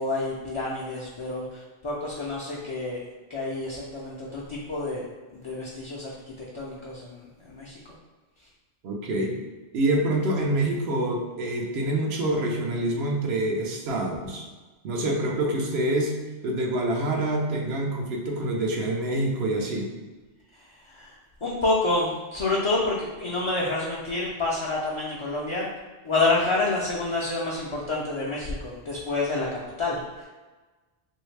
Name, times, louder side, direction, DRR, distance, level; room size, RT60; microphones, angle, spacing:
voice 1, 0.0-3.0 3.3-5.0 5.3-7.8 20.9-21.1 21.4-25.7 26.0-30.2, left 2 dB, 45° left, -5 dB, 0.4 m, -28 dB
voice 2, 8.8-9.3 9.7-14.4 14.8-16.1 16.4-19.9, right 1 dB, 85° right, 0 dB, 0.9 m, -26 dB
3.1 x 2.7 x 3.2 m, 1.3 s
omnidirectional pair, 1.0 m